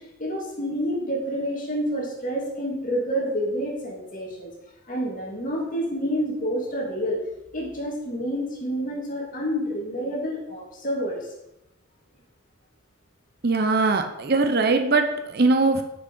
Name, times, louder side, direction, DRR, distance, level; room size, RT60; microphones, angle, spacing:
voice 1, 0.0-4.5 4.9-7.2 7.5-11.3, equal, 40° left, -2 dB, 2.6 m, -28 dB
voice 2, 13.4-15.8, right 3 dB, 45° right, 5 dB, 0.8 m, -21 dB
8.0 x 7.0 x 5.5 m, 0.88 s
head